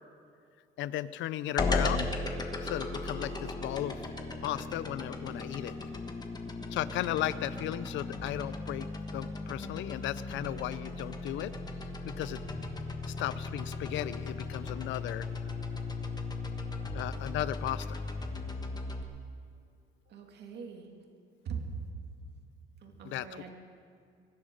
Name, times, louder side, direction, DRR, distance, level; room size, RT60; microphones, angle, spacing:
voice 1, 0.8-2.1 2.6-4.0 4.4-5.7 6.7-8.9 9.1-11.5 12.0-12.4 13.1-15.3 16.9-18.0 23.0-23.3, left 13 dB, 70° left, 16 dB, 0.6 m, -35 dB
sound 1, 1.6-19.0, left 3 dB, 20° left, 1.3 m, -36 dB
voice 2, 20.1-20.9 21.4-22.1 22.7-23.5, right 5 dB, 55° right, 3 dB, 2.2 m, -41 dB
23.5 x 11.5 x 5.2 m, 2.4 s
cardioid pair, 140°, 20 cm